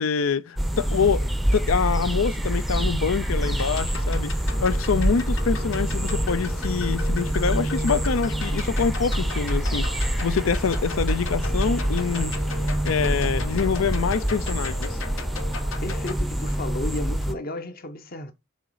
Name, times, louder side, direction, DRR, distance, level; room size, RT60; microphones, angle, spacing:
voice 1, 0.0-4.3 4.6-12.4 12.8-15.0, left 6 dB, 90° left, 0.5 m, -25 dB
sound 1, 0.6-17.3, right 1 dB, ahead, 0.5 m, -26 dB
sound 2, 3.4-16.1, left 5 dB, 70° left, 1.0 m, -38 dB
voice 2, 15.7-18.3, left 1 dB, 45° left, 1.0 m, -34 dB
6.4 x 4.0 x 4.8 m
head